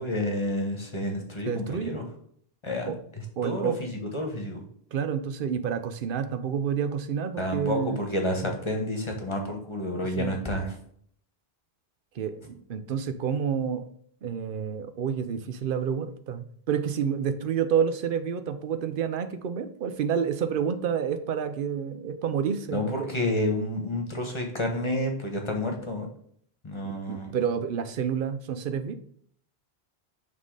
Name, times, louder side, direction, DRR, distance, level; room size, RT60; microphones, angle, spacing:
voice 1, 0.0-2.0 2.6-4.6 7.4-10.7 22.7-26.1 26.6-27.3, left 1 dB, 30° left, 2 dB, 1.3 m, -30 dB
voice 2, 1.4-2.0 2.8-2.9 3.4-3.7 4.9-8.0 10.2-10.3 12.2-13.8 14.2-23.1 27.1-28.9, right 7 dB, 60° right, 10 dB, 0.8 m, -29 dB
6.1 x 3.7 x 4.8 m, 0.63 s
omnidirectional pair, 1.0 m